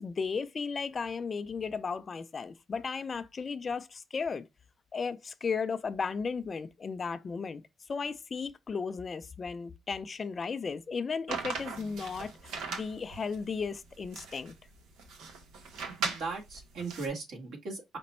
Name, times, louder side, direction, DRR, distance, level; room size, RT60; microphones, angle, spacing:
voice 1, 0.0-4.5 4.9-7.6 7.9-14.5, left 5 dB, 40° left, 0.4 m, -35 dB
sound 1, 11.3-17.1, right 5 dB, 85° right, 1.0 m, -39 dB
voice 2, 16.0-18.0, right 4 dB, 70° right, 1.6 m, -38 dB
5.1 x 2.2 x 4.2 m
cardioid pair, 90°, 0 cm